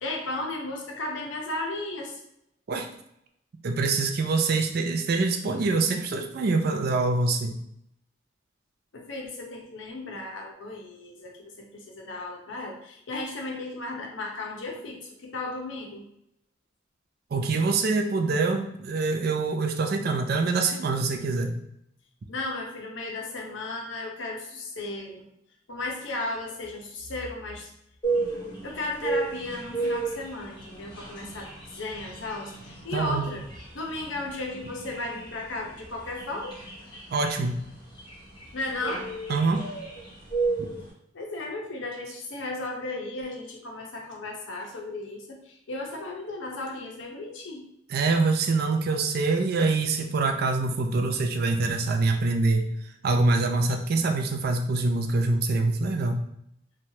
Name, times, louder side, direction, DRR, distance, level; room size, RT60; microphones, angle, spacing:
voice 1, 0.0-2.2 8.9-16.0 22.3-25.3 25.7-27.7 28.6-33.4 33.7-36.6 38.5-39.1 41.1-47.6, left 2 dB, 90° left, 1 dB, 0.7 m, -35 dB
voice 2, 3.6-7.6 17.3-21.5 32.9-33.2 37.1-37.6 39.3-39.7 47.9-52.7 53.0-56.2, right 3 dB, 55° right, 4 dB, 0.4 m, -25 dB
sound 1, 28.0-40.9, right 3 dB, 25° left, 0.7 m, -34 dB
3.1 x 2.2 x 2.7 m, 0.76 s
head